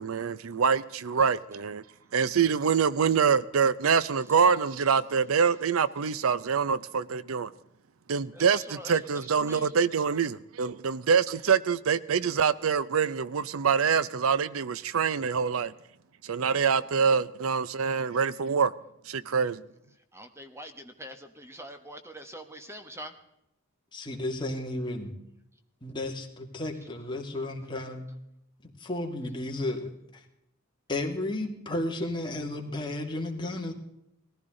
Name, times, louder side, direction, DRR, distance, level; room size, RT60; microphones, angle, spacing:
voice 1, 0.0-1.8 2.1-7.5 8.1-15.7 16.2-18.7 19.1-19.6, right 6 dB, 80° right, 0.6 m, -25 dB
voice 2, 8.3-9.7 14.9-15.0 20.1-23.1, equal, 15° right, 1.1 m, -45 dB
voice 3, 23.9-25.1 25.8-28.1 28.8-30.2 30.9-33.7, left 1 dB, 20° left, 2.2 m, -33 dB
19.5 x 15.0 x 3.8 m
head